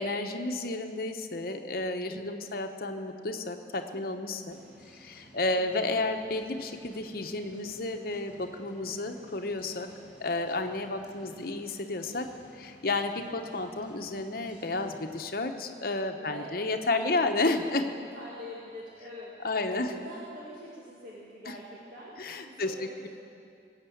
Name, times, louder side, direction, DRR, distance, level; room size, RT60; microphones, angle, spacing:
voice 1, 0.0-4.6 4.9-9.9 10.2-17.9 19.4-19.9 21.5-21.6 22.2-22.7, left 2 dB, 55° left, 5 dB, 1.0 m, -31 dB
voice 2, 2.0-2.5 5.5-5.9 8.9-9.2 11.2-11.5 16.2-23.1, equal, 50° right, -6 dB, 2.1 m, -46 dB
sound 1, 4.5-15.2, equal, 10° right, 2.3 m, -55 dB
19.0 x 7.5 x 8.5 m, 2.4 s
head